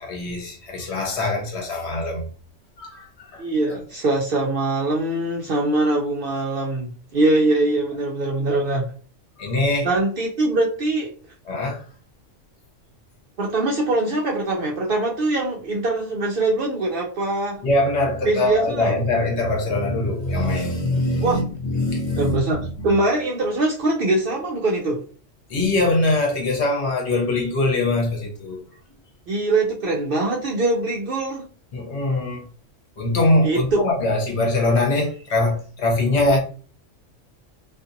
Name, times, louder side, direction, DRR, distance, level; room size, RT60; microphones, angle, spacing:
voice 1, 0.0-2.3 2.8-3.4 9.4-9.9 11.4-11.8 17.6-22.4 22.8-22.9 25.5-28.6 31.7-32.4 33.0-36.4, left 2 dB, 60° left, 1.1 m, -22 dB
voice 2, 3.4-8.9 9.8-11.1 13.4-17.6 18.2-19.0 21.2-21.4 22.2-25.0 29.3-31.5 33.4-33.9, right 2 dB, 60° right, 0.6 m, -22 dB
2.7 x 2.5 x 2.5 m
omnidirectional pair, 1.3 m